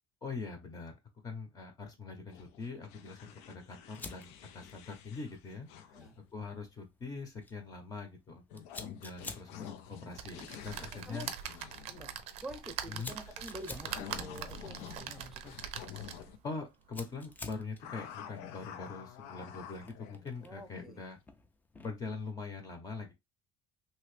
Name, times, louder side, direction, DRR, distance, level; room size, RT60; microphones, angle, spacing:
voice 1, 0.2-0.9 1.2-5.9 6.3-11.3 12.9-13.1 16.4-21.2 21.7-23.1, left 4 dB, 35° left, 0.8 m, -43 dB
sound 1, 2.3-6.3 8.5-16.4 17.8-21.0, left 9 dB, 90° left, 0.5 m, -49 dB
Fire, 3.9-22.1, left 3 dB, 15° left, 0.4 m, -53 dB
sound 2, 10.1-16.4 16.9-17.0 17.3-17.4, right 10 dB, 65° right, 0.5 m, -43 dB
voice 2, 12.4-15.6 20.4-21.0, right 1 dB, 5° right, 0.8 m, -47 dB
2.8 x 2.8 x 3.2 m
cardioid pair, 135°, 11 cm